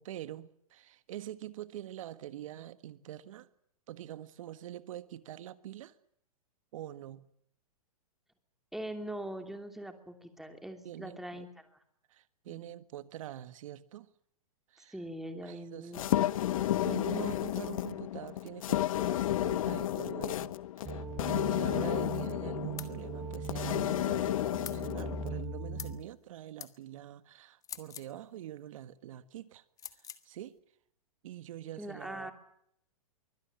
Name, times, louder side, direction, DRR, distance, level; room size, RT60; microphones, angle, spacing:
voice 1, 0.0-3.5 3.9-5.9 6.7-7.3 10.8-11.4 12.1-14.1 14.7-14.9 15.4-16.2 16.8-29.6 30.2-30.5 31.2-32.3, right 12 dB, 60° right, 1.6 m, -45 dB
voice 2, 8.7-11.7 12.5-12.7 14.9-16.3 16.6-16.7 31.8-32.3, right 1 dB, ahead, 2.9 m, -42 dB
sound 1, 15.9-25.4, left 13 dB, 65° left, 1.0 m, -32 dB
sound 2, 20.8-26.0, right 5 dB, 20° right, 3.3 m, -40 dB
sound 3, 22.8-23.0 24.6-24.8 25.8-26.0 26.6-26.7 27.6-28.1 29.8-30.2, left 8 dB, 20° left, 1.6 m, -44 dB
24.0 x 17.0 x 9.8 m
hypercardioid pair, 135°, 19 cm